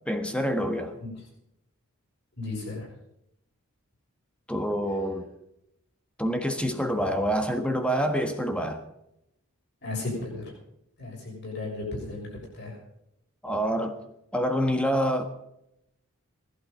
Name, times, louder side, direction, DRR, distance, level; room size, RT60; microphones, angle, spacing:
voice 1, 0.1-0.9 4.5-5.3 6.2-8.8 13.4-14.0 14.3-15.2, equal, 5° left, 1.4 m, -26 dB
voice 2, 2.4-2.9 9.8-10.4 11.0-12.3 12.5-12.7, left 2 dB, 50° left, 6.5 m, -34 dB
20.0 x 11.5 x 5.3 m
head